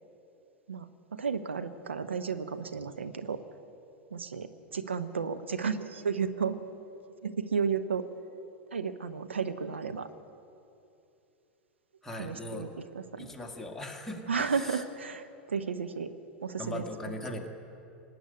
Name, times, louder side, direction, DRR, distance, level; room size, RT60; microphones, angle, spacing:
voice 1, 0.7-3.4 4.1-6.6 7.2-8.0 8.7-10.1 12.1-12.7 12.9-13.3 14.3-16.1 16.4-16.8, right 6 dB, 85° right, 10 dB, 0.7 m, -33 dB
voice 2, 12.0-12.7 13.2-14.8 16.6-17.5, left 1 dB, 5° left, 0 dB, 1.9 m, -39 dB
19.0 x 7.9 x 9.4 m, 2.8 s
figure-of-eight pair, 95°, 6 cm